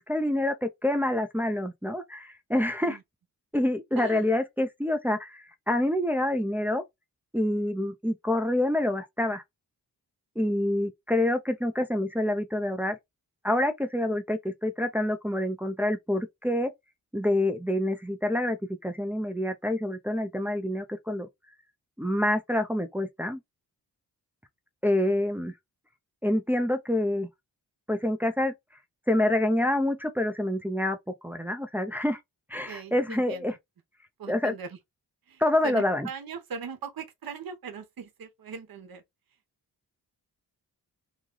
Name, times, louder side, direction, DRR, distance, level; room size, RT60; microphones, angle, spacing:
voice 1, 0.0-3.0 3.5-6.8 7.3-9.4 10.4-13.0 13.4-16.7 17.1-21.3 22.0-23.4 24.8-25.5 26.2-27.3 27.9-28.5 29.1-31.0 31.2-32.2 32.5-33.5 34.3-34.5 35.4-36.1, left 1 dB, 5° right, 0.7 m, -27 dB
voice 2, 4.0-4.3 32.7-33.5 34.2-34.8 35.3-39.0, right 6 dB, 60° right, 1.1 m, -40 dB
3.1 x 2.3 x 3.8 m
cardioid pair, 60°, 39 cm